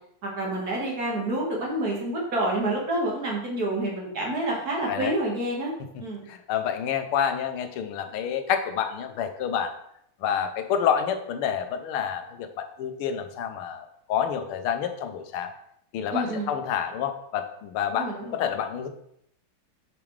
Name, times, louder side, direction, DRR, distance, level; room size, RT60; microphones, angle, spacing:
voice 1, 0.2-5.7 6.0-6.3 16.1-16.5 17.9-18.4, right 1 dB, 45° right, -2 dB, 2.1 m, -28 dB
voice 2, 6.3-9.7 10.2-15.5 15.9-18.9, left 8 dB, 85° left, 8 dB, 1.6 m, -28 dB
7.0 x 6.0 x 3.2 m, 0.74 s
omnidirectional pair, 2.3 m